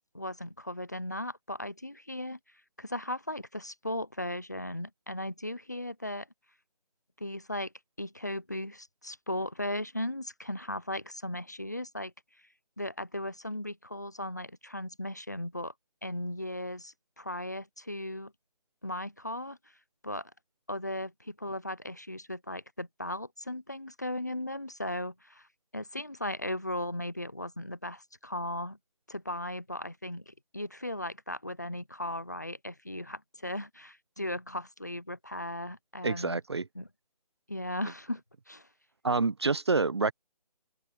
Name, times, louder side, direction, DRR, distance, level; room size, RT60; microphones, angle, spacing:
voice 1, 0.1-2.4 2.8-6.3 7.2-7.7 8.0-12.1 12.8-15.7 16.0-18.3 18.8-19.6 20.0-20.3 20.7-25.5 25.7-28.8 29.1-36.4 36.8-36.9 37.5-38.7, left 1 dB, 25° left, 0.4 m, -37 dB
voice 2, 36.0-36.7 39.0-40.1, right 3 dB, 40° right, 0.7 m, -27 dB
open air
figure-of-eight pair, 170°, 21 cm